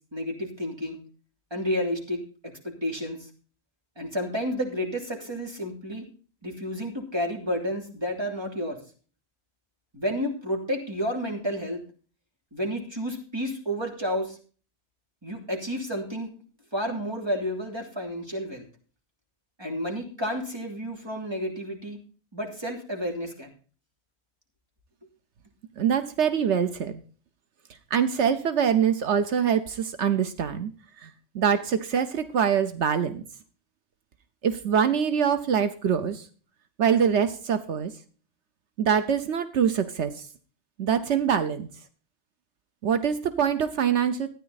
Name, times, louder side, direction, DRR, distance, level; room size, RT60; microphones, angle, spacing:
voice 1, 0.1-1.0 1.5-2.2 2.8-3.2 4.0-6.0 6.4-8.8 9.9-11.8 12.5-14.4 15.2-16.3 16.7-18.6 19.6-22.0 22.3-23.5, equal, 25° right, 0 dB, 3.2 m, -30 dB
voice 2, 25.8-27.0 27.9-30.7 31.0-33.2 34.4-36.3 36.8-37.9 38.8-40.3 40.8-41.7 42.8-44.3, right 7 dB, 85° right, 10 dB, 1.2 m, -24 dB
13.5 x 9.7 x 4.0 m, 0.39 s
omnidirectional pair, 1.1 m